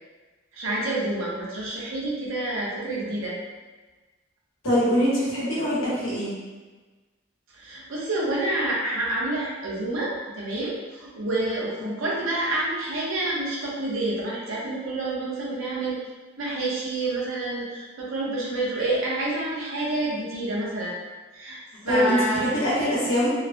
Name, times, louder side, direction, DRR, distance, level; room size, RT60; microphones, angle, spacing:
voice 1, 0.5-3.4 7.6-16.0 16.4-21.0 21.3-21.6 21.8-22.5, right 2 dB, 75° right, -5 dB, 0.7 m, -28 dB
voice 2, 4.6-6.3 11.8-11.9 21.9-23.3, equal, 80° left, -8 dB, 1.2 m, -23 dB
3.1 x 2.1 x 2.6 m, 1.3 s
head